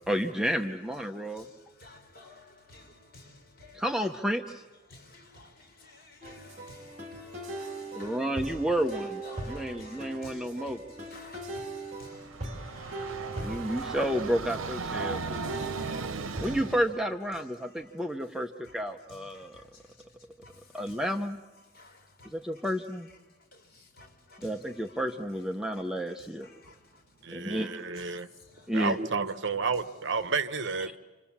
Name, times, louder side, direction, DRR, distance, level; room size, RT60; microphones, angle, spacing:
voice 1, 0.1-1.4 3.7-4.6 7.9-9.2 9.5-10.8 13.4-15.4 16.4-19.6 20.7-21.4 22.3-23.1 24.4-26.5 27.3-27.8 28.7-29.0, equal, 5° right, 0.8 m, -31 dB
voice 2, 0.9-3.8 4.9-8.2 8.9-14.1 15.1-16.6 17.7-18.1 18.7-18.8 19.1-21.0 21.7-22.7 23.3-25.0 25.7-25.8 26.2-27.0 28.0-28.9, left 2 dB, 50° left, 4.6 m, -53 dB
sound 1, 6.2-16.8, right 2 dB, 35° right, 3.3 m, -40 dB
Train, 12.0-17.0, right 4 dB, 85° right, 0.8 m, -37 dB
voice 3, 27.2-28.3 28.7-31.0, right 4 dB, 65° right, 1.0 m, -31 dB
29.0 x 26.5 x 7.3 m
head